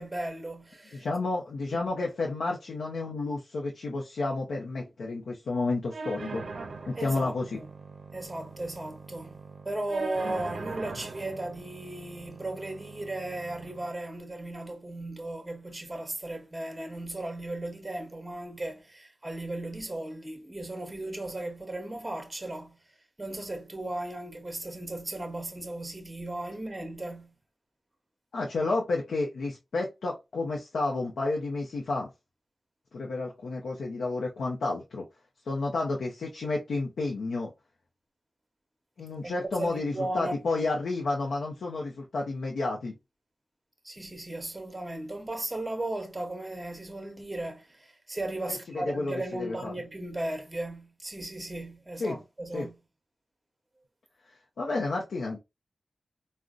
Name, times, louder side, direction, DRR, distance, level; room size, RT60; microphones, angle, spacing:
voice 1, 0.0-1.1 1.7-1.9 7.0-7.7 8.1-9.4 9.7-22.8 23.2-27.3 39.2-40.5 43.8-52.7, right 2 dB, 20° right, 0.8 m, -36 dB
voice 2, 0.9-6.4 6.9-7.6 28.3-32.1 32.9-35.1 35.5-37.5 39.0-42.9 48.7-49.7 52.0-52.2 52.5-52.7 54.6-55.4, left 3 dB, 90° left, 0.5 m, -31 dB
sound 1, 5.9-13.9, right 3 dB, 70° right, 0.5 m, -42 dB
3.7 x 2.1 x 2.4 m
wide cardioid pair, 70°, 0 cm